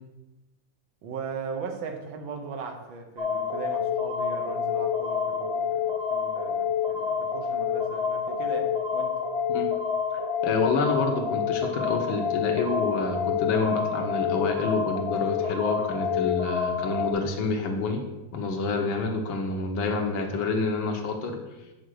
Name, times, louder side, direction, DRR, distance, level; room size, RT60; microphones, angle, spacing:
voice 1, 1.0-9.2, right 5 dB, 90° right, 4 dB, 1.7 m, -38 dB
sound 1, 3.2-17.1, left 7 dB, 25° left, 0.8 m, -28 dB
voice 2, 10.4-18.0 18.3-21.4, left 3 dB, 80° left, 3 dB, 1.8 m, -28 dB
6.3 x 5.1 x 6.4 m, 1.1 s
omnidirectional pair, 2.1 m